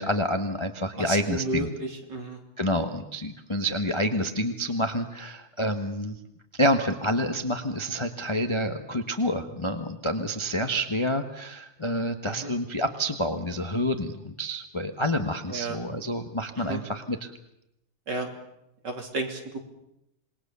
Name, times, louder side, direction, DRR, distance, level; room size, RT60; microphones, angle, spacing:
voice 1, 0.0-1.7 2.6-6.2 6.5-17.3, equal, 20° left, 6 dB, 0.9 m, -28 dB
voice 2, 1.0-2.4 12.2-12.5 15.5-15.8 16.6-16.8 18.1-18.3 18.8-19.6, right 2 dB, 50° right, 2 dB, 3.7 m, -32 dB
27.0 x 20.5 x 6.9 m, 0.84 s
omnidirectional pair, 2.4 m